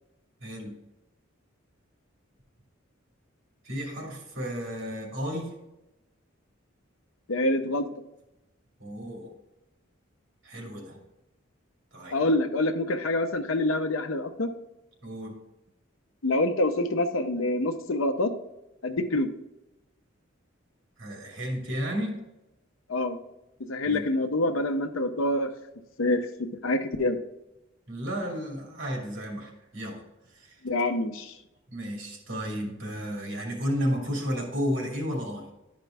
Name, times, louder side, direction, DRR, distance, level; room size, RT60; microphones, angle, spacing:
voice 1, 0.4-0.7 3.6-5.5 8.8-9.3 10.4-11.0 11.9-12.2 15.0-15.4 21.0-22.2 23.8-24.0 27.9-30.0 30.3-30.6 31.7-35.5, equal, 70° right, 0 dB, 2.5 m, -32 dB
voice 2, 7.3-7.9 12.1-14.5 16.2-18.3 18.8-19.3 22.9-23.2 23.7-25.5 26.0-27.2 30.6-31.3, left 1 dB, 85° left, 8 dB, 0.8 m, -26 dB
11.0 x 5.2 x 3.4 m, 0.95 s
head